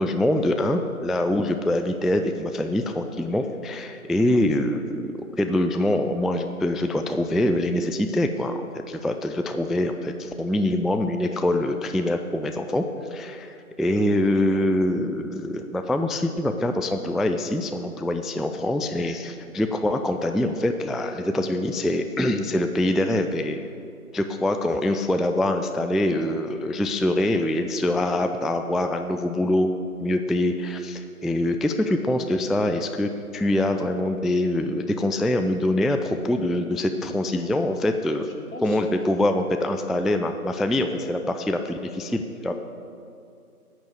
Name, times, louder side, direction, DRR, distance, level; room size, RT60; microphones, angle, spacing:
voice 1, 0.0-12.9 13.1-23.7 24.1-29.7 30.0-38.3 38.6-42.5, left 1 dB, ahead, 6 dB, 0.3 m, -24 dB
voice 2, 13.8-14.1 28.8-28.9 38.3-38.8, left 1 dB, 65° left, 1 dB, 2.3 m, -40 dB
10.0 x 6.6 x 8.2 m, 2.5 s
figure-of-eight pair, 170°, 45 cm